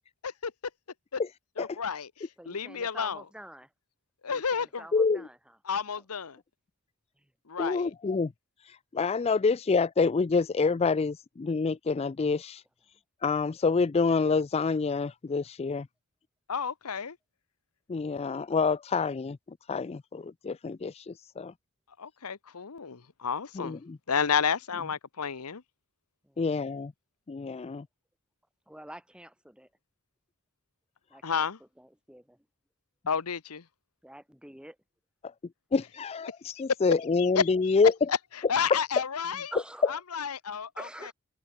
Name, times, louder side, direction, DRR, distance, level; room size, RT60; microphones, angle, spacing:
voice 1, 1.6-2.1 2.5-3.2 4.2-4.8 5.7-6.4 7.5-7.9 16.5-17.2 22.0-23.8 24.1-25.6 31.2-31.6 33.1-33.6 37.3-37.5 38.1-38.2 38.5-39.5 39.9-40.7, left 6 dB, 85° left, 1.0 m, -30 dB
voice 2, 2.4-3.7 4.3-5.6 6.0-6.1 7.2-7.3 26.2-26.9 28.7-29.7 31.1-32.5 34.0-34.8 39.2-39.9 40.8-41.1, right 1 dB, 5° right, 5.1 m, -47 dB
voice 3, 7.6-8.3 8.6-12.6 13.2-15.9 17.9-19.4 19.7-21.5 23.5-24.0 26.4-26.9 27.3-27.9 35.7-37.9 38.7-38.8, left 4 dB, 25° left, 0.3 m, -27 dB
head